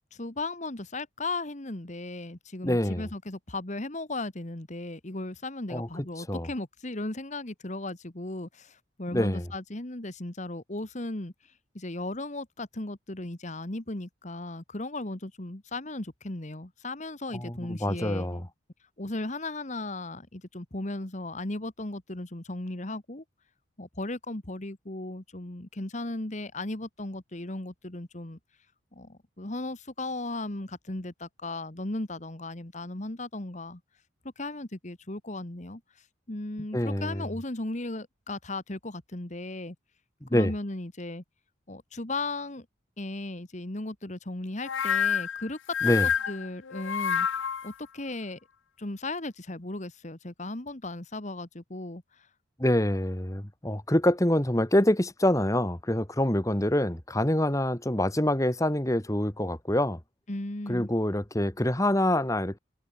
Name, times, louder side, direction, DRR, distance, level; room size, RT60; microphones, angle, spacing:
voice 1, 0.1-18.5 19.0-23.2 23.8-28.4 28.9-33.8 34.4-39.7 40.3-41.2 41.7-42.6 43.0-48.4 48.8-52.3 60.3-60.9, left 2 dB, 40° left, 1.7 m, -36 dB
voice 2, 2.6-3.0 5.7-5.9 6.2-6.5 9.1-9.4 17.3-18.4 36.7-37.2 40.2-40.5 45.8-46.1 52.6-60.0 60.7-62.6, left 1 dB, 15° left, 1.7 m, -26 dB
sound 1, 44.6-47.7, left 7 dB, 85° left, 0.8 m, -28 dB
head